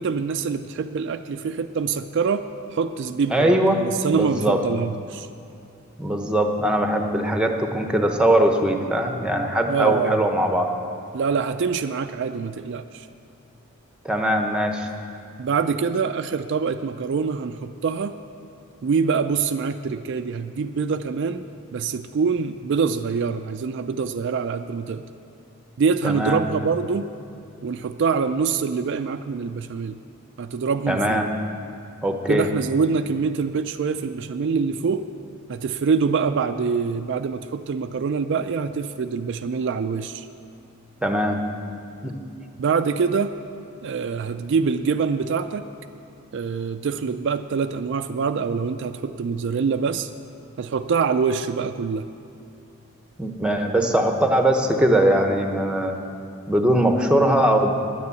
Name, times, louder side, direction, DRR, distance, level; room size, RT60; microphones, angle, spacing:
voice 1, 0.0-5.3 9.7-10.2 11.1-13.1 15.4-18.2 18.8-21.4 21.7-25.1 25.8-27.1 27.6-30.0 30.4-31.2 32.3-35.1 35.5-40.3 42.6-43.4 43.8-45.7 46.3-50.1 50.6-52.1, right 5 dB, 55° right, 8 dB, 0.3 m, -25 dB
voice 2, 3.3-3.8 4.1-4.6 6.0-10.7 14.0-14.9 26.0-26.4 30.9-31.3 32.0-32.5 41.0-41.4 42.0-42.1 53.2-55.9 56.5-57.7, right 1 dB, 5° right, 4 dB, 0.8 m, -21 dB
10.0 x 9.6 x 8.2 m, 2.6 s
head